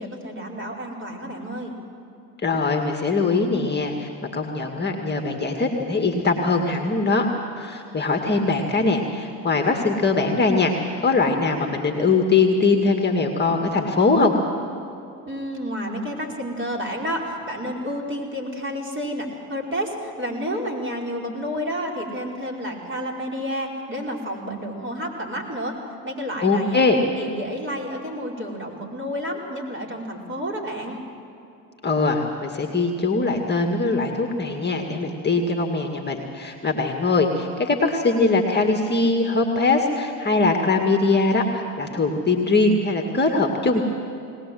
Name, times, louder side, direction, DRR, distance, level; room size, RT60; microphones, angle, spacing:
voice 1, 0.0-1.7 15.3-25.8 26.0-26.8 27.2-31.0, equal, 25° right, 0 dB, 5.1 m, -30 dB
voice 2, 2.4-7.3 7.6-10.7 11.0-14.3 26.4-27.0 31.8-43.8, left 3 dB, 20° left, 4 dB, 2.0 m, -21 dB
21.0 x 19.0 x 7.8 m, 2.7 s
hypercardioid pair, 70°, 48 cm